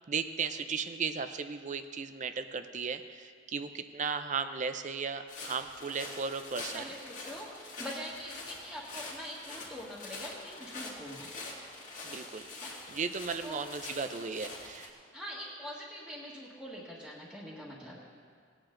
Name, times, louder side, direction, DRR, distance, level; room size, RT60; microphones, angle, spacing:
voice 1, 0.1-6.9 12.0-12.5 12.9-14.9, right 5 dB, 40° right, 10 dB, 0.5 m, -36 dB
sound 1, 5.3-14.9, left 2 dB, 40° left, 2.2 m, -45 dB
voice 2, 6.7-11.3 12.6-12.9 13.4-13.6 15.1-18.0, equal, 5° left, -9 dB, 1.6 m, -44 dB
18.5 x 9.0 x 3.8 m, 2.2 s
head